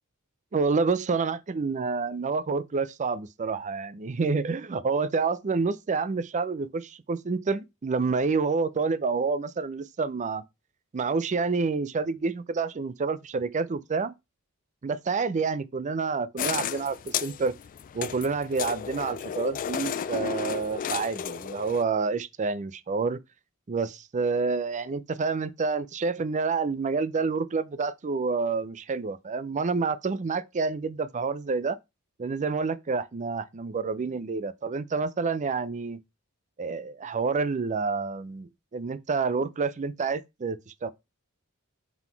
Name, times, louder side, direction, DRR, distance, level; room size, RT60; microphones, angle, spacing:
voice 1, 0.5-10.4 10.9-14.1 14.8-17.6 17.9-23.2 23.7-31.8 32.2-36.0 36.6-40.9, right 4 dB, 35° right, 0.4 m, -28 dB
sound 1, 16.4-21.8, left 8 dB, 40° left, 0.3 m, -33 dB
5.9 x 3.9 x 4.5 m
head